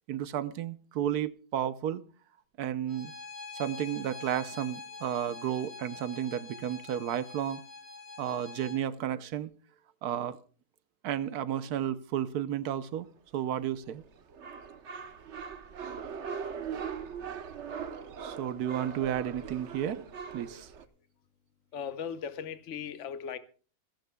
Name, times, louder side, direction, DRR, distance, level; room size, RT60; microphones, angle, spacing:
voice 1, 0.1-2.0 2.6-3.1 3.5-7.6 8.2-9.5 10.0-10.4 11.0-13.1 13.3-14.0 18.2-20.0 20.3-20.7, right 10 dB, 75° right, 1.3 m, -32 dB
Bowed string instrument, 2.9-8.8, left 4 dB, 85° left, 5.8 m, -45 dB
sound 1, 13.4-20.9, right 6 dB, 50° right, 1.1 m, -40 dB
voice 2, 21.7-23.4, left 7 dB, 55° left, 1.2 m, -37 dB
28.0 x 11.5 x 2.3 m
omnidirectional pair, 1.7 m